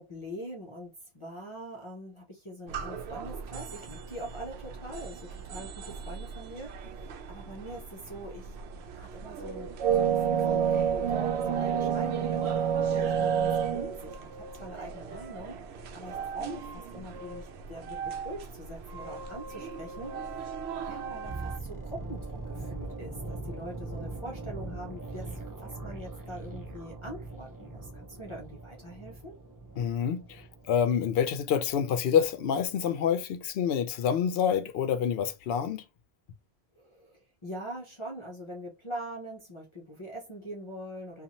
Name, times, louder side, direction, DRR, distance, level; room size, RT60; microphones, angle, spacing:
voice 1, 0.0-8.6 9.0-15.6 15.9-20.5 20.8-29.3 36.8-41.2, equal, 35° left, 0.7 m, -43 dB
sound 1, 2.7-21.6, right 7 dB, 80° right, 0.8 m, -32 dB
sound 2, 21.2-31.2 31.5-31.7, right 2 dB, 25° right, 0.5 m, -41 dB
voice 2, 29.8-35.8, left 8 dB, 70° left, 0.8 m, -27 dB
2.6 x 2.4 x 2.8 m
omnidirectional pair, 1.1 m